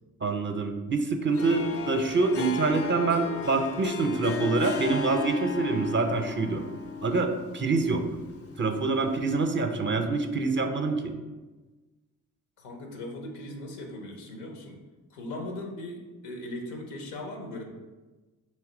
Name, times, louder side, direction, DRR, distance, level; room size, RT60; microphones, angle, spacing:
voice 1, 0.2-6.6 7.0-8.0 8.6-11.1, right 3 dB, 30° right, 6 dB, 0.5 m, -26 dB
Harp, 1.3-9.6, left 5 dB, 40° left, 0.4 m, -36 dB
voice 2, 12.6-14.8 15.1-17.6, left 1 dB, 85° left, 2 dB, 0.7 m, -38 dB
3.2 x 2.9 x 3.8 m, 1.2 s
hypercardioid pair, 45°, 38 cm